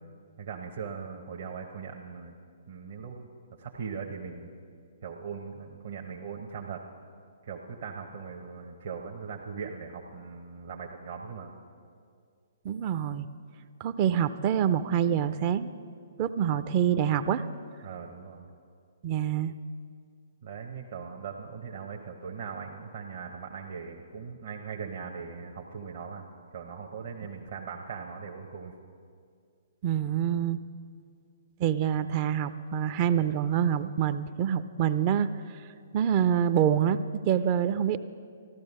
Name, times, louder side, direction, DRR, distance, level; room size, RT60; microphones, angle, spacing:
voice 1, 0.4-2.3 2.7-3.3 3.6-4.5 5.0-6.8 7.4-11.5 17.8-18.5 20.4-26.3 26.5-28.7, right 6 dB, 60° right, 0 dB, 0.9 m, -40 dB
voice 2, 12.6-13.3 13.8-15.7 16.2-17.5 19.0-19.5 29.8-30.6 31.6-35.3 35.9-38.0, right 9 dB, 40° right, 13 dB, 0.4 m, -26 dB
14.5 x 12.5 x 5.4 m, 2.2 s
figure-of-eight pair, 125°, 0 cm